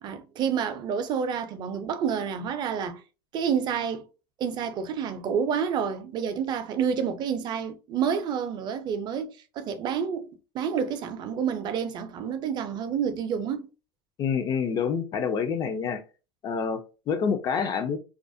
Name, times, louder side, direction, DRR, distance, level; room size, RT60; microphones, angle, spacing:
voice 1, 0.0-3.0 3.3-4.1 4.4-13.7, right 7 dB, 40° right, 0.4 m, -29 dB
voice 2, 14.2-16.0 16.4-18.0, left 6 dB, 35° left, 0.4 m, -27 dB
2.4 x 2.0 x 2.6 m
supercardioid pair, 125°, 11 cm